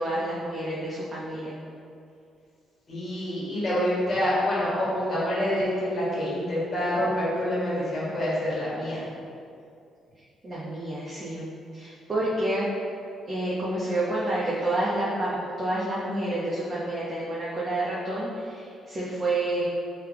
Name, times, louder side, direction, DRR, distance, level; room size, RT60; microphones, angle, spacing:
voice 1, 0.0-1.5 10.4-12.7 13.3-19.6, right 1 dB, 35° right, -7 dB, 0.5 m, -29 dB
voice 2, 2.9-9.0, left 1 dB, 40° left, -8 dB, 1.3 m, -27 dB
3.3 x 2.2 x 3.2 m, 2.4 s
cardioid pair, 90°, 0 cm